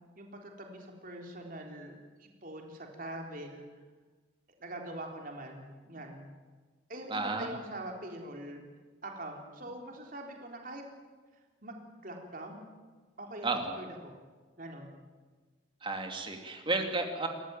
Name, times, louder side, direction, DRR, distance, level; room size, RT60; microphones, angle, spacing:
voice 1, 0.2-1.9 2.2-3.7 4.6-6.3 6.9-8.6 9.0-10.8 11.6-12.7 13.2-13.5 13.8-14.2 14.6-14.9, right 1 dB, 45° right, 2 dB, 3.7 m, -43 dB
voice 2, 7.1-7.5 13.4-13.8 15.8-17.3, right 3 dB, 25° right, 4 dB, 2.7 m, -32 dB
28.5 x 15.0 x 9.1 m, 1.4 s
head